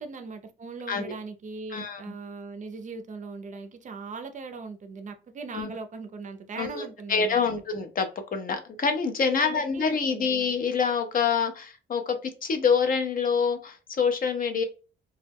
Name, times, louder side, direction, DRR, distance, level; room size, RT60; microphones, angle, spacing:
voice 1, 0.0-7.5 9.3-10.4, right 4 dB, 40° right, 7 dB, 0.4 m, -39 dB
voice 2, 1.7-2.1 5.5-5.7 6.6-14.6, left 5 dB, 45° left, 7 dB, 0.5 m, -26 dB
2.2 x 2.0 x 3.3 m, 0.33 s
cardioid pair, 90°, 20 cm